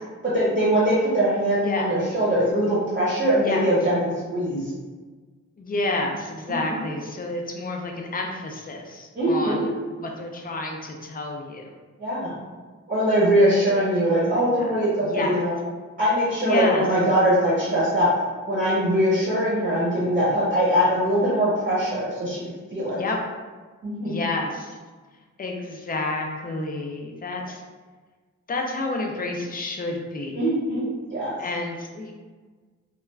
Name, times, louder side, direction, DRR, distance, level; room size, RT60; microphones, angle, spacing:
voice 1, 0.3-4.7 9.1-9.7 12.0-12.3 12.9-15.5 16.0-18.1 18.5-22.4 22.7-23.0 23.8-24.2 30.3-31.3, equal, 30° right, -8 dB, 0.8 m, -22 dB
voice 2, 5.6-11.7 13.8-15.4 16.4-16.9 23.0-23.2 24.0-24.8 25.4-27.6 28.5-30.4 31.4-32.1, left 2 dB, 30° left, 1 dB, 0.4 m, -30 dB
2.3 x 2.2 x 3.1 m, 1.4 s
wide cardioid pair, 140°, 31 cm